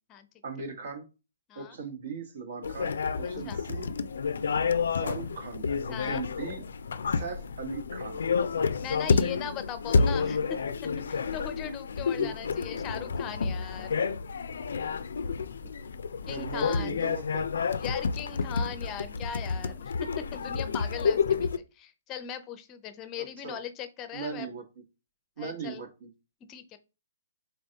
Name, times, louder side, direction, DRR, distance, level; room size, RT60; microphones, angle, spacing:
voice 1, 0.4-1.0 1.5-3.9 4.9-6.6 7.1-8.2 12.2-12.3 16.3-17.5 23.4-23.6 24.1-24.6 25.4-26.1, right 5 dB, 65° right, 5 dB, 1.2 m, -39 dB
sound 1, 2.6-21.6, left 5 dB, 75° left, 0.3 m, -29 dB
voice 2, 3.2-3.6 5.9-6.3 8.8-10.6 11.1-13.9 16.3-17.1 17.8-21.5 21.7-24.5 25.4-25.8 26.5-26.8, left 8 dB, 25° left, 11 dB, 0.6 m, -39 dB
3.9 x 3.3 x 2.8 m, 0.30 s
hypercardioid pair, 145°, 0 cm